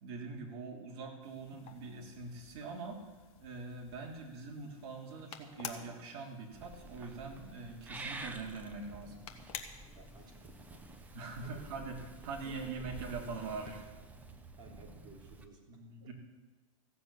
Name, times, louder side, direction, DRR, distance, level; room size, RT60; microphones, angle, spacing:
voice 1, 0.0-3.1 3.4-9.2 11.1-13.9 15.7-16.1, right 4 dB, 45° right, 0 dB, 3.3 m, -43 dB
sound 1, 1.2-13.9, left 9 dB, 35° left, 1.3 m, -53 dB
Purr / Meow, 6.5-15.5, right 2 dB, 10° right, 0.8 m, -50 dB
voice 2, 9.8-10.9 11.4-11.8 12.4-12.7 14.6-15.6 16.0-16.1, right 4 dB, 25° right, -2 dB, 3.4 m, -56 dB
15.5 x 7.6 x 8.4 m, 1.2 s
hypercardioid pair, 145°, 18 cm